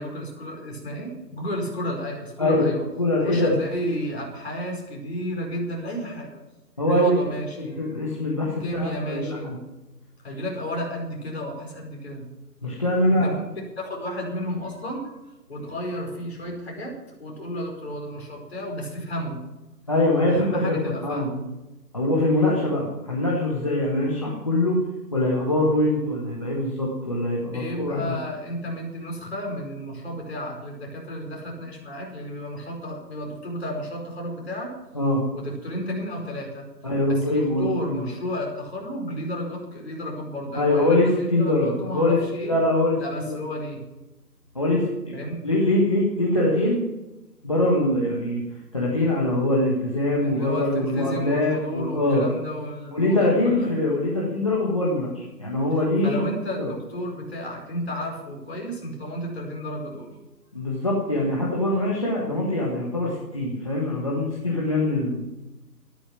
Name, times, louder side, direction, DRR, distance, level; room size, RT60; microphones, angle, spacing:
voice 1, 0.0-2.8 3.2-6.4 6.8-8.0 8.6-9.5 10.2-12.2 13.2-13.5 13.8-15.2 15.5-19.4 20.3-21.4 27.5-34.7 35.3-36.7 37.0-42.6 43.0-43.8 45.1-45.4 50.2-53.7 56.0-60.1, equal, 40° left, -1 dB, 4.9 m, -32 dB
voice 2, 3.0-3.5 6.8-7.1 7.8-9.6 12.6-13.3 19.9-20.8 21.0-21.3 21.9-24.8 25.1-28.1 34.9-35.2 36.8-38.0 40.5-42.2 42.4-43.4 44.5-45.1 45.4-46.8 47.4-48.4 48.7-52.2 52.9-56.2 56.6-56.7 60.5-65.2, left 1 dB, 20° left, -5 dB, 1.5 m, -23 dB
14.0 x 13.0 x 6.0 m, 1.0 s
figure-of-eight pair, 175°, 50 cm